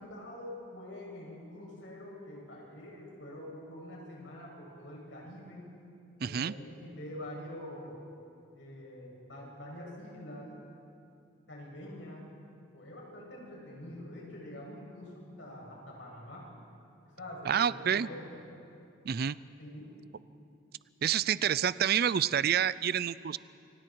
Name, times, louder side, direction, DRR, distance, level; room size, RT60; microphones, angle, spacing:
voice 1, 0.1-5.7 6.2-8.0 8.5-10.5 11.5-12.3 12.7-16.5 17.2-18.4 19.6-20.0, left 1 dB, 90° left, -3 dB, 7.8 m, -45 dB
voice 2, 6.2-6.5 17.5-18.1 19.0-19.4 21.0-23.4, right 8 dB, 55° right, 18 dB, 0.4 m, -28 dB
29.0 x 24.5 x 4.7 m, 2.5 s
head